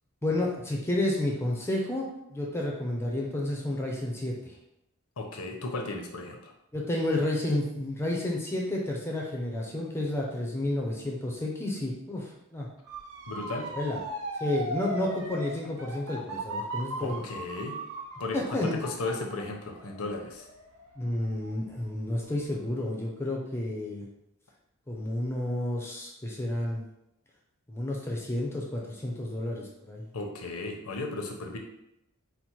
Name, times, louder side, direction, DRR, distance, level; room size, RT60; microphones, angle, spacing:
voice 1, 0.2-4.6 6.7-12.7 13.7-14.0 14.4-17.4 18.3-18.8 21.0-24.1 24.9-26.9 27.7-30.0, left 1 dB, 10° left, -2 dB, 0.5 m, -31 dB
voice 2, 5.2-6.5 13.3-13.7 17.0-17.8 18.2-20.5 30.1-31.6, left 2 dB, 75° left, 2 dB, 0.7 m, -35 dB
Motor vehicle (road) / Siren, 12.9-21.8 22.2-22.6, right 1 dB, 90° right, 0.7 m, -38 dB
4.1 x 2.1 x 4.5 m, 0.85 s
head